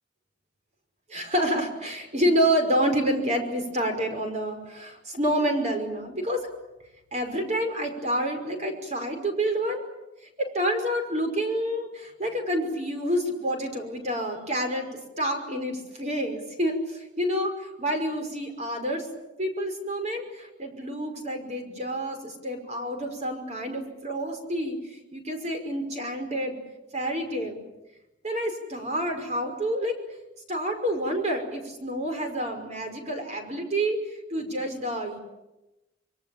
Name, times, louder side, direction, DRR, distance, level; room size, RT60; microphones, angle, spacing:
voice 1, 1.1-6.5 7.1-9.8 10.4-14.9 15.2-19.1 19.4-26.6 26.9-27.6 28.2-29.9 30.5-35.2, equal, 40° right, 5 dB, 5.6 m, -28 dB
26.0 x 24.0 x 8.7 m, 0.97 s
head